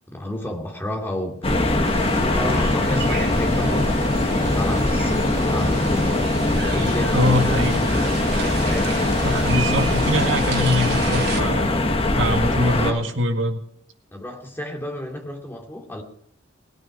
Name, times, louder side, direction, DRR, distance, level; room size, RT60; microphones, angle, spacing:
voice 1, 0.1-10.6 12.7-13.2 14.1-16.0, left 1 dB, 10° left, 1 dB, 2.7 m, -32 dB
sound 1, 1.4-12.9, left 2 dB, 30° left, 1.3 m, -21 dB
sound 2, 1.8-11.4, right 4 dB, 55° right, 3.4 m, -33 dB
voice 2, 7.1-7.8 9.2-11.7 12.2-13.6, left 1 dB, 80° right, 4 dB, 2.0 m, -23 dB
19.5 x 9.4 x 6.6 m, 0.70 s
head